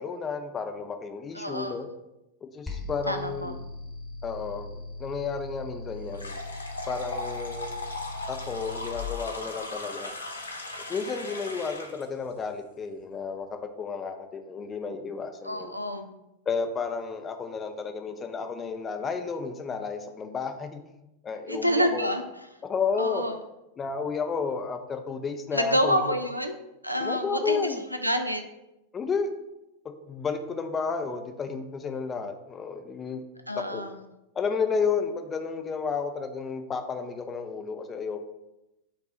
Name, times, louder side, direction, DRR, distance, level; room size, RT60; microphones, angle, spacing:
voice 1, 0.0-1.9 2.4-3.6 4.2-6.3 6.9-7.7 8.3-10.1 10.9-15.7 16.5-20.8 21.2-22.1 22.7-23.2 23.8-26.2 27.0-27.8 28.9-29.3 30.1-33.2 33.6-33.8 34.3-38.2, left 5 dB, 20° left, 6 dB, 0.5 m, -32 dB
voice 2, 1.3-1.7 3.1-3.5 15.5-16.1 21.5-22.2 23.0-23.3 25.5-26.6 26.8-27.6 28.0-28.4 33.5-33.9, equal, 90° right, 7 dB, 0.3 m, -27 dB
sound 1, 2.7-9.1, left 2 dB, ahead, 1.0 m, -39 dB
sound 2, 6.1-12.0, left 2 dB, 75° left, 0.6 m, -38 dB
5.4 x 2.3 x 3.7 m, 0.93 s
figure-of-eight pair, 90°, 0 cm